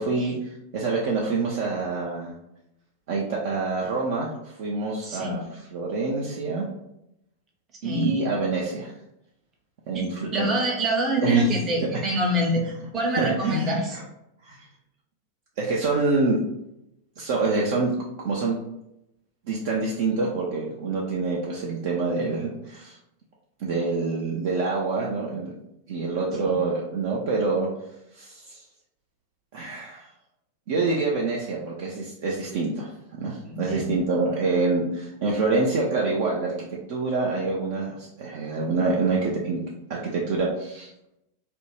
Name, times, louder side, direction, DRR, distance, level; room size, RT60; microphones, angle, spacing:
voice 1, 0.0-2.4 3.1-6.6 7.8-8.9 9.9-10.5 11.2-11.5 13.2-14.0 14.4-14.7 15.6-16.4 17.2-18.0 18.2-18.6 19.5-23.0 23.6-25.5 25.9-27.7 28.1-28.6 29.5-30.1 30.7-32.9 33.2-39.6 39.9-40.9, right 3 dB, 50° right, -3 dB, 0.5 m, -26 dB
voice 2, 5.0-5.4 7.8-8.1 10.3-14.0 26.5-26.6 33.4-33.9, right 1 dB, 25° right, 0 dB, 0.8 m, -25 dB
2.5 x 2.1 x 3.0 m, 0.83 s
figure-of-eight pair, 90°, 0 cm